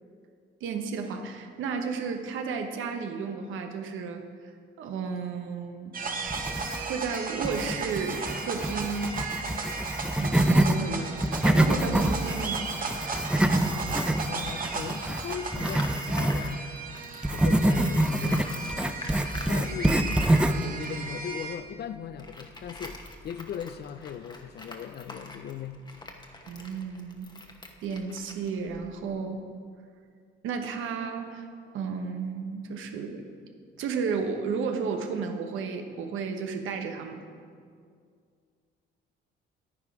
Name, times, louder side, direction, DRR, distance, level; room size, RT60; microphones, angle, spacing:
voice 1, 0.6-4.2 4.8-5.9 6.8-9.2 10.2-12.7 26.5-27.3 27.8-29.4 30.4-31.4 31.7-33.2 33.8-37.2, right 5 dB, 85° right, 1.0 m, -33 dB
sound 1, 5.9-21.5, right 4 dB, 45° right, 1.2 m, -36 dB
sound 2, 6.3-7.1 7.4-10.8 11.1-16.5 17.2-20.7, right 1 dB, 5° right, 0.5 m, -26 dB
Tools, 11.6-17.4 17.7-29.1, left 2 dB, 20° left, 1.1 m, -46 dB
voice 2, 14.3-15.8 16.2-16.6 17.3-18.4 18.9-19.1 19.5-20.2 20.5-25.8, left 9 dB, 55° left, 0.5 m, -38 dB
9.9 x 9.2 x 4.9 m
cardioid pair, 90°, 20 cm